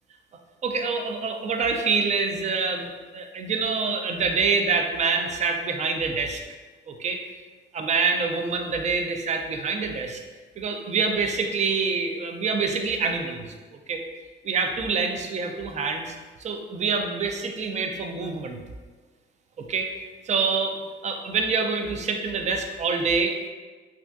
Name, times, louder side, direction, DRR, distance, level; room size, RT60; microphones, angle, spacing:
voice 1, 0.6-6.4 6.9-7.2 7.7-10.2 10.6-13.5 13.9-14.0 14.4-16.1 16.4-18.6 19.6-19.9 20.3-23.5, right 4 dB, 35° right, 4 dB, 0.4 m, -26 dB
3.3 x 2.3 x 2.5 m, 1.3 s
cardioid pair, 90°, 20 cm